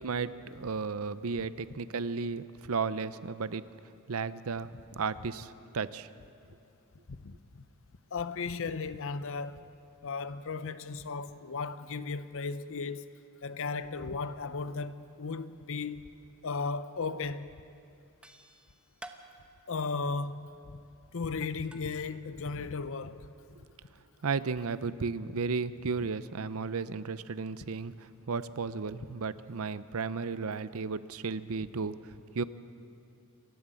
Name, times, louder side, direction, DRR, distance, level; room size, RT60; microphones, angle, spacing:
voice 1, 0.0-3.6 4.1-6.1 24.2-27.9 28.3-32.4, right 4 dB, 70° right, 0.6 m, -34 dB
voice 2, 7.1-7.7 8.1-9.7 10.0-13.0 13.4-16.1 16.4-17.6 19.7-20.8 21.1-23.3, left 4 dB, 60° left, 0.7 m, -36 dB
sound 1, 17.2-17.3 17.5-17.9 18.2-21.9, right 1 dB, 5° right, 1.0 m, -52 dB
28.0 x 12.5 x 7.7 m
head